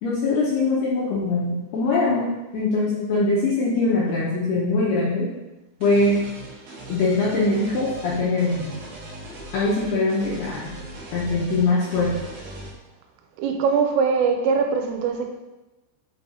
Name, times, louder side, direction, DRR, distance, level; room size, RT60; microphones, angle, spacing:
voice 1, 0.0-5.3 5.8-6.2 6.9-8.7 9.5-10.7 11.1-12.1, left 3 dB, 80° left, -6 dB, 2.3 m, -22 dB
sound 1, 5.8-12.7, right 1 dB, 70° right, 2.8 m, -39 dB
voice 2, 13.4-15.3, right 5 dB, 90° right, 4 dB, 3.3 m, -21 dB
6.9 x 5.4 x 2.8 m, 1.0 s
omnidirectional pair, 5.7 m